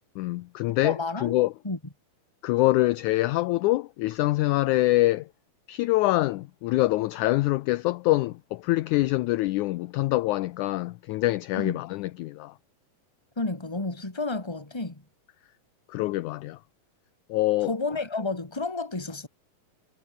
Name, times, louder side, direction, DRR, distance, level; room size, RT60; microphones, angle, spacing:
voice 1, 0.2-1.5 2.4-5.3 5.7-12.5 15.9-16.6 17.3-17.7, left 18 dB, 80° left, 1.8 m, -25 dB
voice 2, 0.8-1.3 1.6-1.8 11.6-11.8 13.4-15.0 17.6-19.3, left 3 dB, 10° left, 2.3 m, -31 dB
omnidirectional pair, 4.1 m